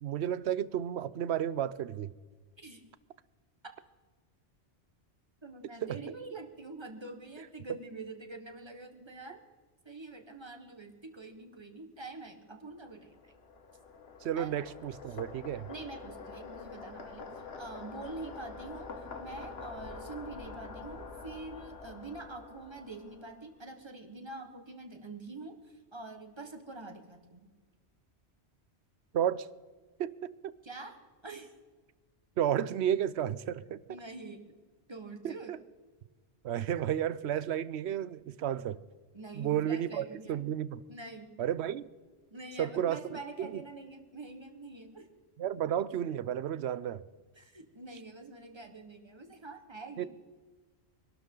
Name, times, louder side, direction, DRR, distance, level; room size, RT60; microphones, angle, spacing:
voice 1, 0.0-2.1 5.8-6.0 14.2-15.7 29.1-29.5 30.0-30.5 32.4-33.8 35.2-35.6 36.4-38.8 39.3-40.8 41.4-41.9 42.6-43.0 43.4-43.6 45.4-47.0 50.0-50.1, right 10 dB, 75° right, 0.9 m, -32 dB
voice 2, 5.4-9.4 9.8-13.3 14.3-14.7 15.1-15.2 15.7-27.5 30.6-31.5 33.9-34.4 34.9-35.5 39.1-40.4 40.9-41.3 42.3-45.1 47.3-50.1, right 3 dB, 25° right, 1.5 m, -46 dB
sound 1, 12.8-23.5, left 4 dB, 65° left, 1.6 m, -46 dB
24.0 x 12.0 x 3.9 m
omnidirectional pair, 1.1 m